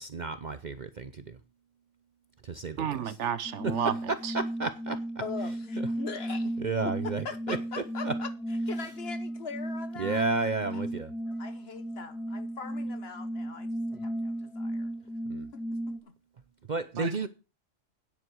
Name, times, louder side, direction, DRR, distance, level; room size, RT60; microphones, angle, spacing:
voice 1, 0.0-1.4 2.4-3.0 4.1-5.0 5.8-5.9 6.6-8.2 10.0-11.1 15.3-15.5 16.7-17.3, right 4 dB, 45° right, 0.7 m, -32 dB
voice 2, 2.8-4.3 17.0-17.3, right 8 dB, 65° right, 1.1 m, -32 dB
sound 1, 3.4-16.0, right 1 dB, ahead, 2.5 m, -35 dB
voice 3, 5.2-6.5 7.2-8.3 8.7-10.2 10.7-10.8 11.4-13.7 14.0-14.9 15.5-15.6 16.0-16.1, left 5 dB, 50° left, 1.3 m, -41 dB
9.4 x 7.9 x 6.2 m
omnidirectional pair, 1.4 m